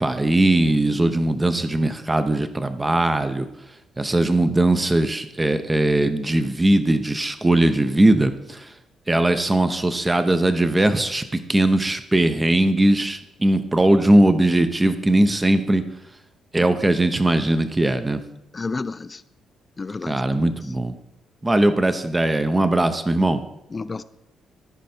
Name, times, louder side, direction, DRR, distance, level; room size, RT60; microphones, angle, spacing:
voice 1, 0.0-3.5 4.0-8.7 9.1-15.8 16.5-18.2 20.1-20.9 21.4-23.4, right 1 dB, 15° right, 10 dB, 0.7 m, -19 dB
voice 2, 18.5-19.2 19.8-20.5 23.7-24.0, left 4 dB, 30° left, 14 dB, 0.5 m, -31 dB
14.0 x 5.3 x 4.3 m, 0.84 s
cardioid pair, 90°, 0 cm